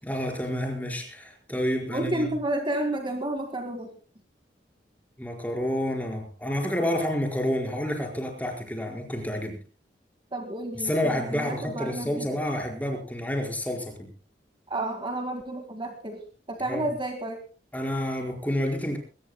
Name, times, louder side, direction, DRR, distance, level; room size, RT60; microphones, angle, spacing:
voice 1, 0.0-2.3 5.2-9.6 10.7-14.1 16.7-16.9 17.7-19.0, left 1 dB, 10° left, 1 dB, 4.7 m, -29 dB
voice 2, 1.9-3.9 10.3-12.3 14.7-17.4, right 1 dB, 30° right, 5 dB, 1.9 m, -31 dB
22.5 x 20.0 x 2.2 m, 0.35 s
head